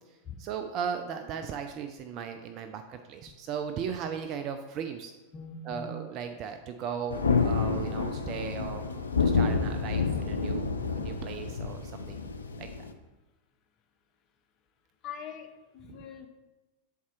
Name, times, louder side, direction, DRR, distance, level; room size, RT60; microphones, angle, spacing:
voice 1, 0.1-5.1 5.7-8.9 9.2-10.7 11.0-12.2 12.6-12.7 15.9-16.0, right 7 dB, 35° right, 6 dB, 0.4 m, -37 dB
voice 2, 5.3-5.9 15.0-16.3, left 6 dB, 35° left, 5 dB, 0.8 m, -42 dB
Thunder, 7.1-12.9, left 4 dB, 75° left, 0.5 m, -29 dB
7.1 x 4.2 x 4.5 m, 1.1 s
figure-of-eight pair, 90°, 0 cm